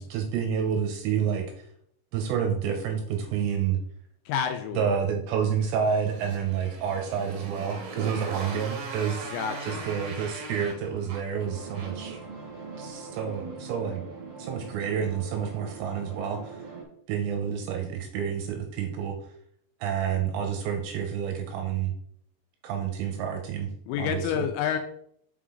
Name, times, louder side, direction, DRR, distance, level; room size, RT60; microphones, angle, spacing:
voice 1, 0.0-1.5 2.1-3.8 4.8-9.3 9.6-12.2 12.8-14.0 14.4-16.6 17.1-19.2 19.8-21.9 22.6-23.7 24.0-24.5, right 7 dB, 80° right, 4 dB, 2.7 m, -29 dB
voice 2, 4.3-4.9 9.3-9.8 23.9-24.8, left 8 dB, 85° left, 6 dB, 2.8 m, -29 dB
Motorcycle, 5.8-12.2, right 3 dB, 65° right, 2.1 m, -39 dB
sound 1, 11.4-16.8, right 4 dB, 35° right, 2.3 m, -42 dB
6.1 x 5.7 x 3.7 m, 0.67 s
omnidirectional pair, 5.6 m